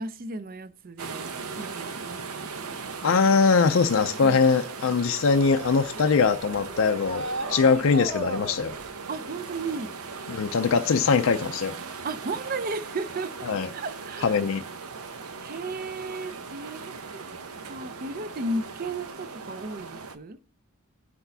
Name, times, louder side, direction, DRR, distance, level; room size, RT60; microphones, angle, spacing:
voice 1, 0.0-2.6 4.2-4.4 9.1-9.9 12.0-14.4 15.4-17.2 17.7-20.4, right 3 dB, 40° right, 0.5 m, -35 dB
sound 1, 1.0-20.2, right 4 dB, 85° right, 0.8 m, -39 dB
voice 2, 3.0-8.8 10.3-11.7 13.4-13.7 14.2-14.6, left 5 dB, 65° left, 0.4 m, -22 dB
sound 2, 5.3-8.9, right 1 dB, 65° right, 1.6 m, -35 dB
17.5 x 5.9 x 2.7 m
head